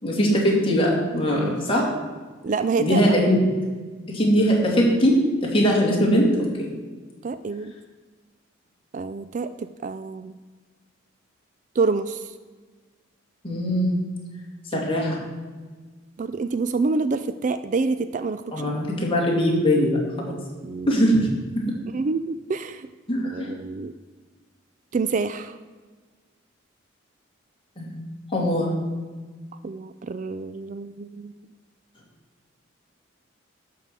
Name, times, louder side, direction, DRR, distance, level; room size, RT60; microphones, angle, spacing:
voice 1, 0.0-1.9 2.8-3.4 4.1-6.7 13.4-14.0 14.7-15.2 18.5-20.4 20.9-21.3 23.1-23.5 27.8-28.0 28.3-28.7, equal, 25° left, -3 dB, 2.6 m, -21 dB
voice 2, 2.4-3.0 7.2-7.7 8.9-10.3 11.8-12.3 14.7-14.8 16.2-18.7 20.2-20.9 21.9-22.9 23.2-23.9 24.9-25.6 29.6-31.3, right 4 dB, 40° right, 12 dB, 0.3 m, -27 dB
11.5 x 4.8 x 7.5 m, 1.4 s
head